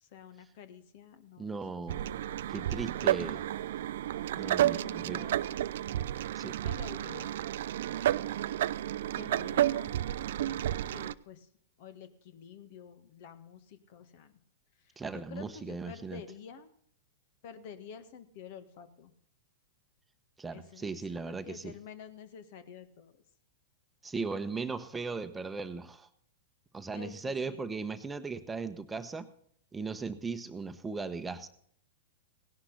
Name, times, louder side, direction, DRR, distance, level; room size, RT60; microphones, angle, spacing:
voice 1, 0.0-2.4 2.7-3.3 4.7-5.9 6.6-7.4 9.2-11.5 11.8-14.4 14.8-16.7 17.4-19.1 20.5-23.2 26.9-27.7, left 7 dB, 55° left, 11 dB, 1.6 m, -50 dB
voice 2, 1.4-2.1 2.5-3.4 4.4-5.3 6.4-6.6 15.0-16.2 20.4-21.7 24.0-26.1 26.7-29.3 29.7-31.5, right 4 dB, 10° right, 9 dB, 1.0 m, -37 dB
sound 1, 1.9-11.1, right 12 dB, 65° right, 0.4 m, -31 dB
17.0 x 11.5 x 4.0 m, 0.65 s
hypercardioid pair, 110°, 0 cm